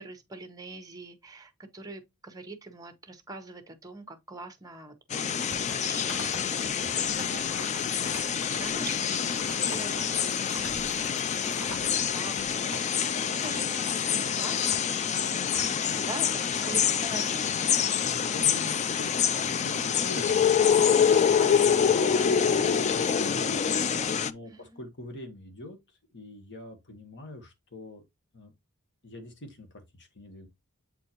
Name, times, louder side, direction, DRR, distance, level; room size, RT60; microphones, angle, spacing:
voice 1, 0.0-6.2 6.5-7.5 8.5-9.2 9.5-11.1 11.5-13.1 13.4-14.7 15.0-17.7 24.4-24.8, right 2 dB, 15° right, 1.0 m, -43 dB
sound 1, 5.1-24.3, left 7 dB, 30° left, 0.3 m, -26 dB
sound 2, 5.5-5.8 6.1-6.6 6.9-7.4 8.0-8.3 8.8-9.2 9.6-9.9 10.6-11.1 11.3-12.3 12.7-12.9 13.4-13.7 14.1-15.7, left 1 dB, 70° left, 4.5 m, -45 dB
sound 3, 6.5-12.8, left 3 dB, 90° left, 1.1 m, -47 dB
voice 2, 18.1-23.6 24.2-28.0 28.3-28.5 29.0-30.5, left 1 dB, 55° left, 1.5 m, -44 dB
7.7 x 4.2 x 3.0 m
head